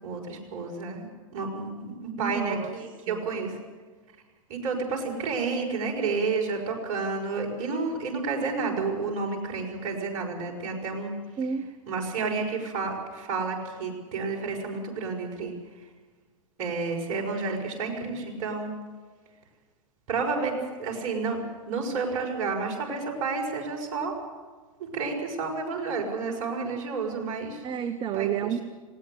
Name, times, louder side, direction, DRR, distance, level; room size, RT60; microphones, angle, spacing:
voice 1, 0.0-1.1 1.3-3.6 4.5-11.1 11.9-15.6 16.6-18.7 20.1-21.4 21.7-24.1 24.9-27.6 28.1-28.3, right 4 dB, 50° right, 2 dB, 6.0 m, -30 dB
voice 2, 2.2-2.8 3.1-3.3 11.4-11.7 15.4-15.5 27.6-28.6, right 8 dB, 25° right, 10 dB, 1.1 m, -30 dB
19.5 x 18.0 x 8.0 m, 1.4 s
hypercardioid pair, 110°, 18 cm